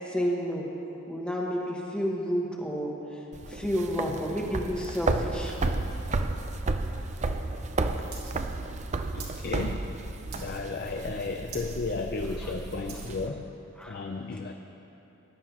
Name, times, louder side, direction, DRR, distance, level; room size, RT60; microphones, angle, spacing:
voice 1, 0.1-0.7 1.1-3.2 3.5-5.5 13.8-14.0, equal, 5° left, -2 dB, 1.3 m, -30 dB
sound 1, 3.3-13.3, right 3 dB, 35° right, 0.4 m, -32 dB
sound 2, 8.1-8.3 8.6-9.4 9.8-10.0 10.3-10.8 11.1-11.2 11.4-11.8 12.2-13.2 13.8-13.9, right 6 dB, 75° right, 1.9 m, -44 dB
voice 2, 9.1-9.9 10.3-13.5 13.9-14.5, left 3 dB, 45° left, 4 dB, 0.5 m, -34 dB
20.5 x 11.0 x 2.9 m, 3.0 s
head